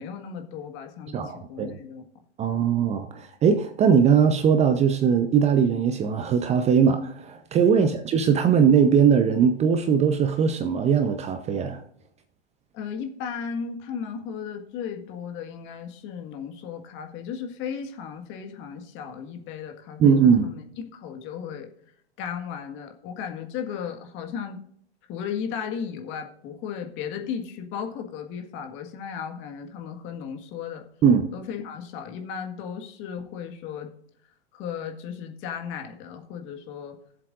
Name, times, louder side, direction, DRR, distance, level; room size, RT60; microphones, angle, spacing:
voice 1, 0.0-2.1 7.7-8.0 12.7-20.6 20.9-21.7 22.2-24.6 25.1-30.9 31.3-33.9 34.5-37.0, left 7 dB, 35° left, 1.7 m, -35 dB
voice 2, 1.1-1.8 2.4-11.8 20.0-20.5 31.0-31.3, right 7 dB, 20° right, 0.7 m, -20 dB
17.0 x 7.6 x 2.5 m
hypercardioid pair, 115°, 34 cm